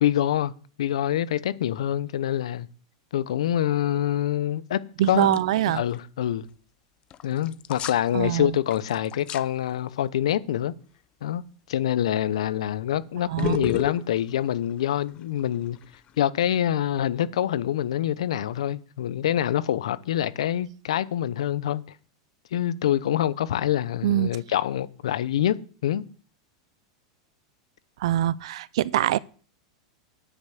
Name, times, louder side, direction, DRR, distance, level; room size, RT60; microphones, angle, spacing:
voice 1, 0.0-0.5 0.8-2.7 3.1-4.8 5.1-5.4 5.7-6.5 7.2-10.7 11.2-11.4 11.7-15.8 16.2-21.8 22.5-25.5 25.8-26.0, left 11 dB, 80° left, 0.8 m, -25 dB
voice 2, 5.0-5.8 8.1-8.6 13.3-13.7 24.0-24.4 28.0-29.2, right 13 dB, 75° right, 0.5 m, -24 dB
sound 1, 5.3-5.6 5.9-6.0 7.1-8.1 8.5-9.5 12.1-12.4 13.4-16.3, left 11 dB, 35° left, 0.6 m, -34 dB
9.9 x 5.6 x 8.5 m
hypercardioid pair, 120°, 3 cm